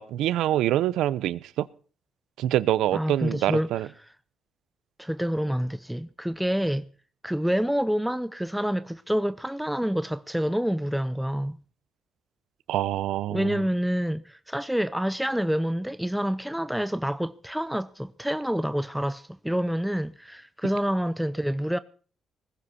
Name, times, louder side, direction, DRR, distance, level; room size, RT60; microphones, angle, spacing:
voice 1, 0.0-1.7 2.4-3.9 12.7-13.6, right 13 dB, 85° right, 0.7 m, -25 dB
voice 2, 2.9-3.7 5.0-6.9 7.2-11.6 13.3-21.8, equal, 5° right, 0.7 m, -27 dB
19.5 x 15.5 x 4.2 m
cardioid pair, 90°, 0 cm